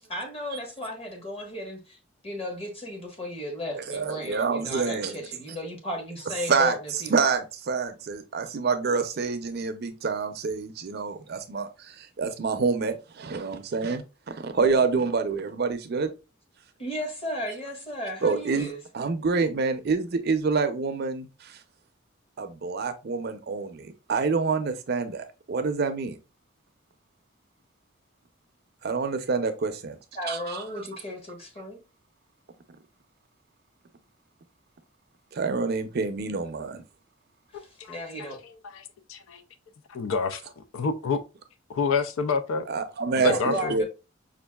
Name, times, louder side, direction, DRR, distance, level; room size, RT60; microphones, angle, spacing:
voice 1, 0.1-2.0 2.2-7.1 16.8-18.8 30.1-31.8 37.5-38.4 43.2-43.8, left 1 dB, 30° left, 1.1 m, -35 dB
voice 2, 3.9-5.2 6.5-6.8 7.1-16.1 18.2-18.7 18.9-21.6 22.4-26.2 28.8-30.0 30.2-30.7 35.3-36.8 42.7-43.8, right 4 dB, 50° right, 0.5 m, -27 dB
voice 3, 37.5-38.0 38.6-39.4 39.9-41.2 41.8-42.7 43.2-43.8, left 4 dB, 85° left, 0.4 m, -28 dB
5.2 x 2.4 x 2.2 m
head